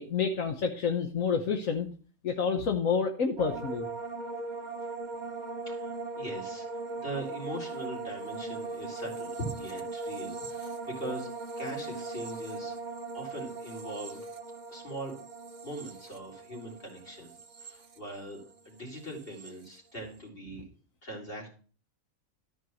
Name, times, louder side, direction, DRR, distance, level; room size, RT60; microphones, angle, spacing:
voice 1, 0.0-1.9 2.2-3.9, left 5 dB, 70° left, 5 dB, 1.4 m, -29 dB
sound 1, 3.4-18.6 18.9-19.5, right 3 dB, 35° right, 1.0 m, -39 dB
voice 2, 5.7-14.2 14.7-15.2 15.6-17.3 17.6-20.6 21.0-21.5, right 1 dB, 40° left, -1 dB, 3.9 m, -41 dB
13.5 x 5.3 x 6.3 m, 0.42 s
omnidirectional pair, 1.4 m